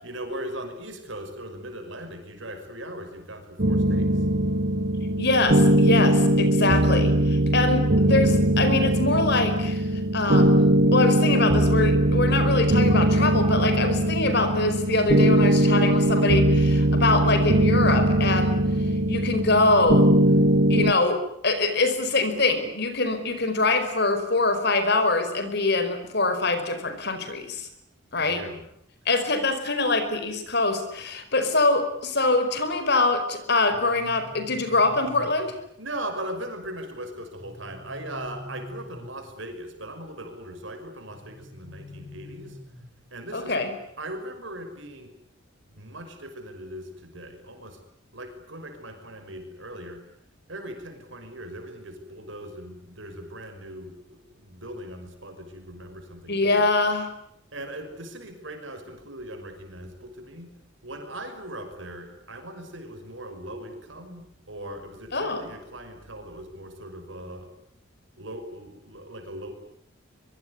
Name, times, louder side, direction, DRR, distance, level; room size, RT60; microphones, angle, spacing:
voice 1, 0.0-4.2 28.2-28.7 35.8-42.6 43.1-43.6 44.0-45.1 45.7-47.8 48.1-50.1 50.5-56.7 57.5-60.5 60.8-67.5 68.2-69.5, right 1 dB, 65° right, 6 dB, 5.7 m, -39 dB
sound 1, 3.6-20.9, right 1 dB, 45° right, 1.5 m, -20 dB
voice 2, 5.2-18.6 19.1-20.1 20.7-27.7 28.1-28.4 29.0-35.5 43.3-43.7 56.3-57.1 65.1-65.5, left 3 dB, 50° left, 9 dB, 5.0 m, -24 dB
sound 2, 33.7-35.7 37.4-39.4 41.1-43.1, left 1 dB, 10° right, 5.7 m, -45 dB
24.5 x 23.5 x 9.7 m, 0.75 s
head